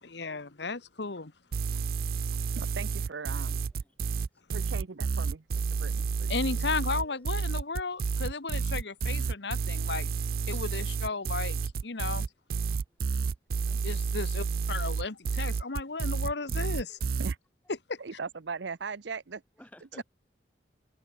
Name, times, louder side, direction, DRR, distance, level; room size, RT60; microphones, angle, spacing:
voice 1, 0.0-1.3 6.3-10.1 10.5-12.3 13.8-17.0 17.9-18.0 20.0-20.1, left 4 dB, 70° left, 1.2 m, -34 dB
sound 1, 1.5-17.3, right 5 dB, 50° right, 0.3 m, -30 dB
voice 2, 2.6-3.6 4.5-5.4 5.8-6.6 17.2-17.4 18.0-19.4 20.0-20.1, right 5 dB, 75° right, 0.7 m, -39 dB
voice 3, 6.9-7.3 9.6-10.5 12.9-13.3 13.6-13.8 16.9-17.0 19.6-20.0, equal, 10° left, 4.1 m, -58 dB
head